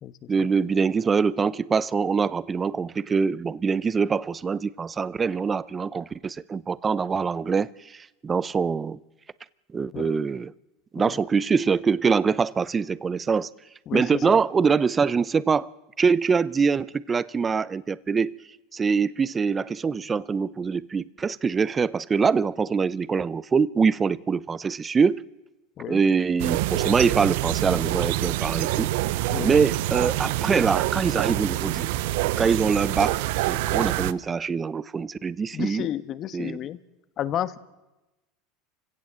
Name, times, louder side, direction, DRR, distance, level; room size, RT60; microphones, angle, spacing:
voice 1, 0.3-9.0 9.7-10.5 10.9-13.5 13.9-15.7 16.0-18.4 18.7-25.2 25.9-28.9 29.4-35.9 36.3-36.6, right 5 dB, 25° right, 0.7 m, -24 dB
voice 2, 13.9-14.4 25.8-26.0 29.3-29.6 35.5-36.8 37.2-37.6, left 11 dB, 45° left, 1.3 m, -31 dB
sound 1, 26.4-34.1, right 16 dB, 70° right, 0.7 m, -26 dB
28.5 x 16.5 x 7.5 m
hypercardioid pair, 100°, 0 cm